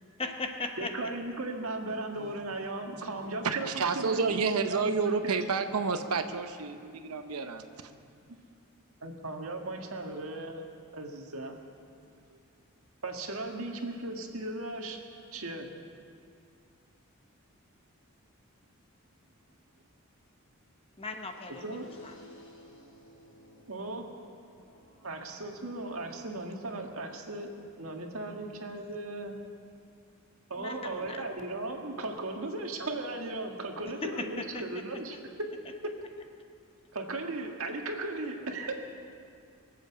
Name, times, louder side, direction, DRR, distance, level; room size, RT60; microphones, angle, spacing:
voice 1, 0.0-0.9 7.3-7.5 21.0-22.1 30.6-31.2 34.0-34.6, left 3 dB, 25° left, 5 dB, 0.9 m, -38 dB
voice 2, 0.8-5.4 9.0-10.7 10.9-11.6 13.0-15.0 15.3-15.7 21.6-21.9 23.7-24.1 25.0-29.4 30.5-35.5 35.8-35.9 36.9-38.9, right 2 dB, 70° right, 2 dB, 1.7 m, -37 dB
voice 3, 3.2-7.9, right 5 dB, 90° right, 8 dB, 0.8 m, -30 dB
sound 1, 21.1-27.1, equal, 60° left, 5.1 m, -57 dB
23.5 x 8.2 x 7.1 m, 2.4 s
head